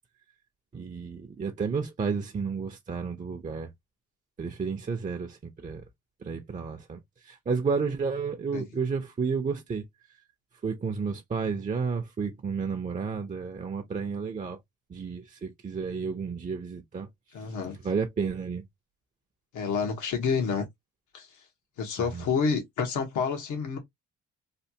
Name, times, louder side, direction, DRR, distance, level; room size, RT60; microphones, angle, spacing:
voice 1, 0.7-3.7 4.4-5.9 6.2-9.8 10.6-14.6 14.9-17.1 17.8-18.6 22.1-22.3, right 5 dB, 25° right, 0.6 m, -31 dB
voice 2, 17.3-17.8 19.5-20.6 21.1-21.3 21.8-23.8, left 5 dB, 80° left, 1.3 m, -28 dB
3.3 x 2.3 x 2.8 m
cardioid pair, 90°, 30 cm